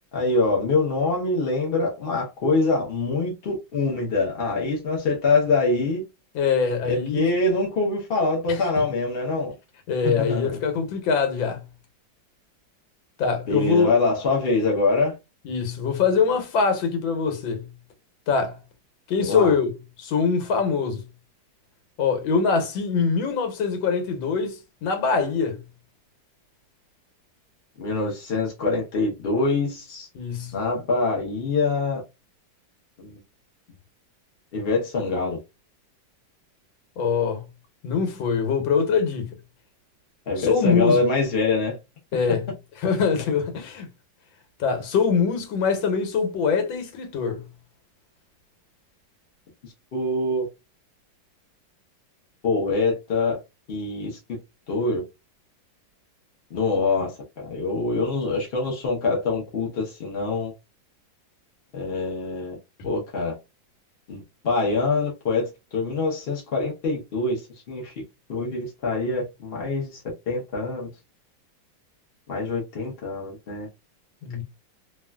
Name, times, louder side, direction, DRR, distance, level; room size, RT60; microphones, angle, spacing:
voice 1, 0.1-6.0 6.8-9.5 10.0-10.6 13.5-15.2 19.2-19.5 27.8-30.1 30.5-32.0 33.0-33.2 34.5-35.4 40.3-41.8 42.3-42.4 49.6-50.5 52.4-53.4 53.7-54.2 54.7-55.0 56.5-60.5 61.7-62.6 62.8-63.4 64.1-67.9 68.3-70.9 72.3-73.7, left 3 dB, 55° left, 0.6 m, -24 dB
voice 2, 6.3-7.3 9.9-11.6 13.2-13.9 15.4-17.7 18.3-18.6 19.1-19.7 20.0-21.0 22.0-25.6 30.1-30.6 37.0-37.4 37.8-39.4 40.4-41.0 42.1-42.5 42.8-43.9 44.6-47.5 74.2-74.4, left 5 dB, 85° left, 1.6 m, -23 dB
3.2 x 2.4 x 2.2 m
omnidirectional pair, 2.1 m